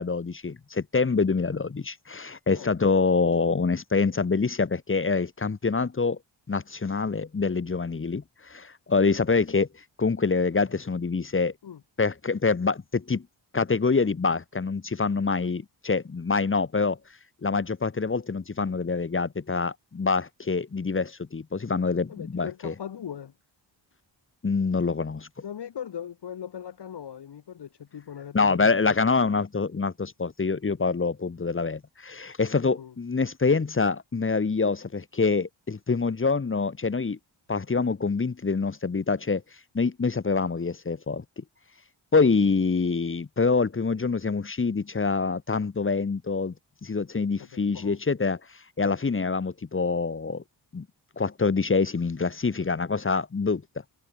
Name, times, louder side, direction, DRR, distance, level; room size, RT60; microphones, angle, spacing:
voice 1, 0.0-6.2 6.5-9.7 10.0-11.5 12.0-13.2 13.5-17.0 17.4-22.7 24.4-25.3 28.3-37.2 37.5-39.4 39.7-41.4 42.1-46.5 46.8-48.4 48.8-50.4 50.7-50.9 51.2-53.6, left 4 dB, 25° left, 1.0 m, -25 dB
voice 2, 22.1-23.3 25.4-29.2 32.8-32.9 42.1-42.3 47.4-48.0, left 9 dB, 55° left, 1.4 m, -39 dB
cardioid pair, 65°, 48 cm